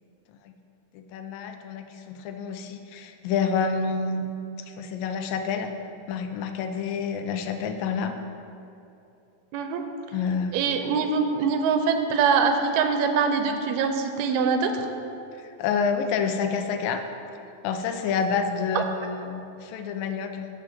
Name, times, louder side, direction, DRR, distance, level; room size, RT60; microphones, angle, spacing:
voice 1, 0.9-4.3 4.8-5.7 6.1-8.1 10.1-10.5 15.3-17.0 17.6-20.5, left 5 dB, 75° left, 6 dB, 2.2 m, -28 dB
voice 2, 9.5-9.9 10.5-14.9 18.7-18.9, right 5 dB, 90° right, 6 dB, 2.7 m, -23 dB
13.5 x 4.9 x 6.0 m, 2.7 s
omnidirectional pair, 4.4 m